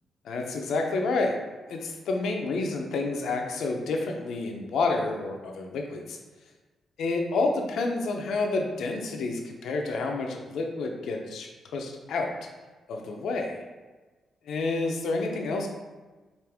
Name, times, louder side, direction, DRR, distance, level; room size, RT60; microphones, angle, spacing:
voice 1, 0.2-1.4 1.7-6.2 7.0-11.5 11.7-12.3 12.9-13.6 14.5-15.7, left 3 dB, 80° left, 2 dB, 0.6 m, -29 dB
5.0 x 2.5 x 3.4 m, 1.3 s
cardioid pair, 85°, 0 cm